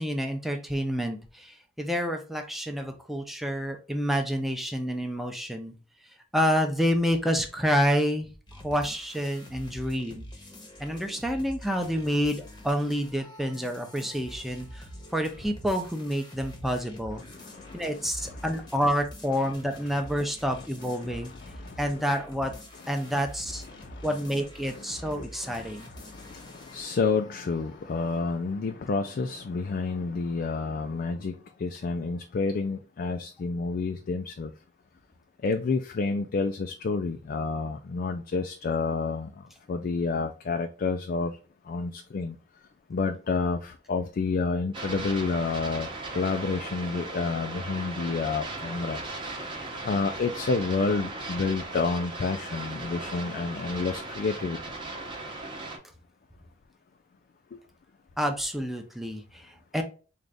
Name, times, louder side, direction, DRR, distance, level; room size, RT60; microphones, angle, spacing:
voice 1, 0.0-5.7 6.3-8.3 8.6-10.3 10.8-14.8 15.1-17.2 17.7-21.3 21.8-22.6 22.9-23.6 24.0-25.9 58.2-59.8, equal, ahead, 0.6 m, -28 dB
sound 1, 8.5-28.3, equal, 25° left, 0.9 m, -46 dB
voice 2, 17.3-18.4 21.0-21.1 21.4-21.8 22.9-23.0 23.7-24.1 24.9-25.3 25.5-34.5 35.4-41.4 41.7-42.4 42.9-49.0 49.8-54.7 57.5-57.6, left 4 dB, 50° left, 0.3 m, -30 dB
sound 2, 44.7-55.8, right 2 dB, 25° right, 0.8 m, -37 dB
3.8 x 2.4 x 3.3 m
head